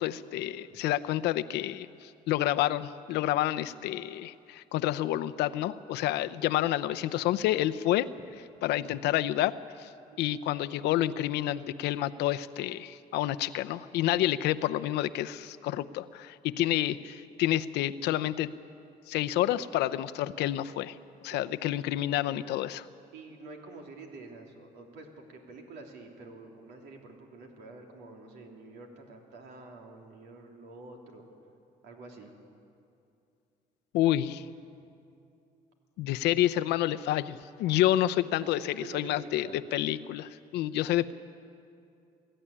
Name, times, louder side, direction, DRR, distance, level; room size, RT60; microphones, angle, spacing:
voice 1, 0.0-8.1 8.6-9.5 9.8-9.9 10.2-18.5 19.1-21.0 21.2-22.9 33.9-34.4 36.0-38.6 38.9-41.1, left 13 dB, 85° left, 12 dB, 0.7 m, -29 dB
voice 2, 21.3-21.8 23.1-31.3 31.8-32.3 38.4-39.6, right 3 dB, 80° right, 1 dB, 3.2 m, -47 dB
22.0 x 13.5 x 9.9 m, 2.5 s
cardioid pair, 110°, 17 cm